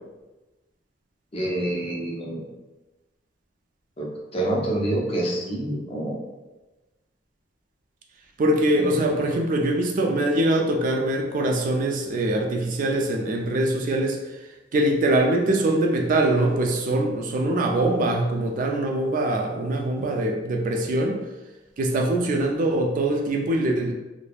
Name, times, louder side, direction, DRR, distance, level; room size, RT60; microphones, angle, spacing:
voice 1, 1.3-2.5 4.0-6.2 8.7-9.0, right 1 dB, 30° left, -2 dB, 0.5 m, -27 dB
voice 2, 8.4-14.2 14.7-21.2 21.8-23.9, right 1 dB, 45° right, 2 dB, 0.3 m, -23 dB
3.2 x 2.0 x 2.2 m, 1.1 s
head